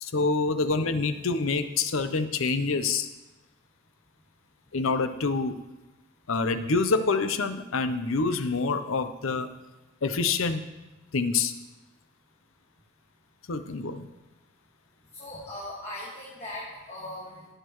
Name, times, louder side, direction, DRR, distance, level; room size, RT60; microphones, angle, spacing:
voice 1, 0.0-3.1 4.7-5.5 6.3-9.5 10.0-10.6 11.1-11.5 13.5-14.1, left 4 dB, 85° left, 10 dB, 0.7 m, -26 dB
voice 2, 15.1-17.5, left 1 dB, 30° left, -7 dB, 1.7 m, -39 dB
18.5 x 6.7 x 3.1 m, 1.1 s
head